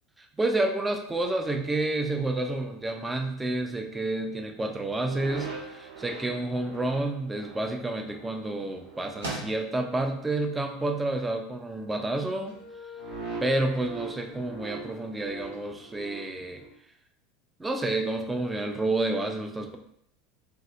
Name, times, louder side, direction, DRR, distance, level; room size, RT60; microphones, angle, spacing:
voice 1, 0.4-12.6 13.4-16.6 17.6-19.8, right 2 dB, 15° right, 4 dB, 0.4 m, -29 dB
sound 1, 1.1-10.6 10.9-11.3 11.6-12.0 12.4-16.7, right 4 dB, 50° right, 0.7 m, -44 dB
sound 2, 7.2-16.9, right 2 dB, 80° right, 0.8 m, -47 dB
2.7 x 2.0 x 3.4 m, 0.69 s
figure-of-eight pair, 75°, 0 cm